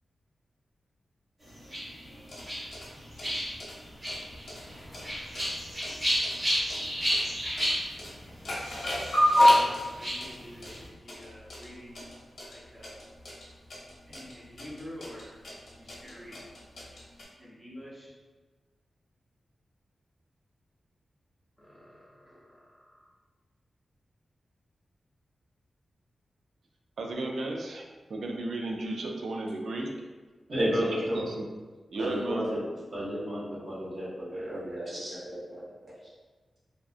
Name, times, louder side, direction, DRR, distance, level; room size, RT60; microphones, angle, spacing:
sound 1, 1.4-10.9, equal, 25° right, 1.1 m, -33 dB
sound 2, 2.1-17.2, left 1 dB, 65° left, 0.7 m, -31 dB
voice 1, 9.5-12.1 12.5-13.0 13.8-15.4 15.8-16.4 17.4-18.1 21.6-23.1, equal, 5° right, -6 dB, 0.6 m, -48 dB
voice 2, 27.0-27.8 28.1-29.9 30.8-31.5 31.9-32.5, right 2 dB, 75° right, 1 dB, 0.3 m, -34 dB
voice 3, 30.5-31.2 32.0-32.6 32.9-35.6, equal, 45° right, -8 dB, 1.0 m, -32 dB
2.6 x 2.3 x 2.4 m, 1.3 s
wide cardioid pair, 130°, 0 cm